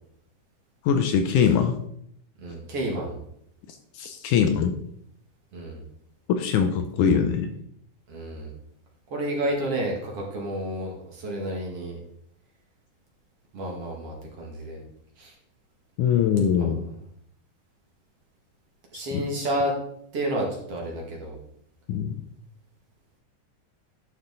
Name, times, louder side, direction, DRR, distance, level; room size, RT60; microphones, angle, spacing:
voice 1, 0.8-1.8 4.0-4.8 6.3-7.5 16.0-16.8 19.1-19.3 21.9-22.2, left 7 dB, 75° left, 7 dB, 2.0 m, -22 dB
voice 2, 2.4-3.2 5.5-5.8 8.1-8.5 9.1-12.0 13.5-14.8 15.2-15.3 16.6-16.7 18.9-19.7 20.1-21.4, right 1 dB, 50° right, -1 dB, 2.7 m, -30 dB
11.5 x 6.4 x 3.9 m, 0.70 s
omnidirectional pair, 3.9 m